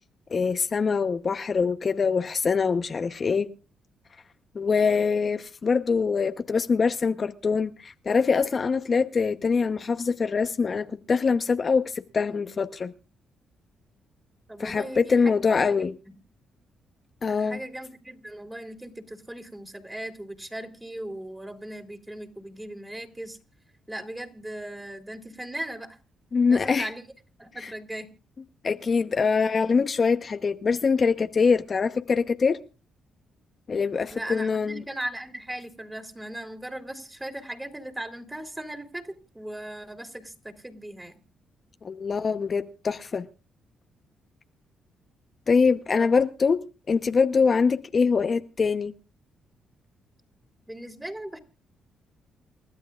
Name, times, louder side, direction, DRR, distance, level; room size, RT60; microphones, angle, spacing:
voice 1, 0.3-3.5 4.5-12.9 14.6-15.9 17.2-17.6 26.3-26.9 27.6-27.7 28.6-32.6 33.7-34.8 41.8-43.3 45.5-48.9, left 5 dB, 45° left, 0.9 m, -24 dB
voice 2, 14.5-16.1 17.2-23.4 23.9-26.0 26.5-27.0 27.4-28.1 34.1-41.2 46.0-46.2 50.7-51.4, right 1 dB, 10° right, 3.3 m, -38 dB
29.0 x 13.0 x 2.4 m
cardioid pair, 70°, 0 cm